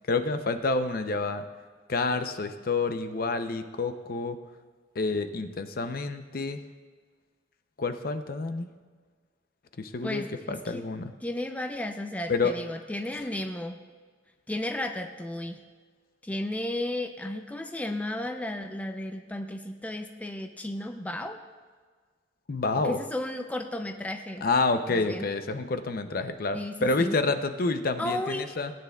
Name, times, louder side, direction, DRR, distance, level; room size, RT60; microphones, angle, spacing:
voice 1, 0.1-1.4 1.9-4.4 5.0-6.6 7.8-8.7 9.8-11.1 12.3-12.5 22.5-23.0 24.4-28.7, left 3 dB, 55° left, 8 dB, 0.6 m, -28 dB
voice 2, 10.0-10.8 11.2-13.8 14.5-15.6 16.2-21.4 22.8-24.5 24.9-25.3 26.5-27.2 28.0-28.5, left 1 dB, 10° left, 5 dB, 0.5 m, -34 dB
19.0 x 9.4 x 2.3 m, 1.5 s
head